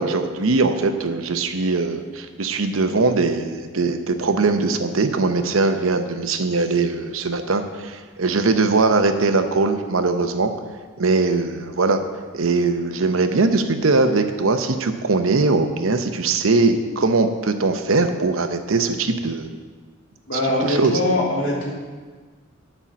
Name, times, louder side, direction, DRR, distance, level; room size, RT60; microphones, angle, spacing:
voice 1, 0.0-10.5 11.0-12.0 12.3-19.5 20.3-20.9, right 3 dB, 85° right, 7 dB, 0.8 m, -21 dB
voice 2, 20.3-21.7, left 1 dB, 60° left, -4 dB, 2.7 m, -22 dB
10.0 x 5.6 x 7.2 m, 1.5 s
head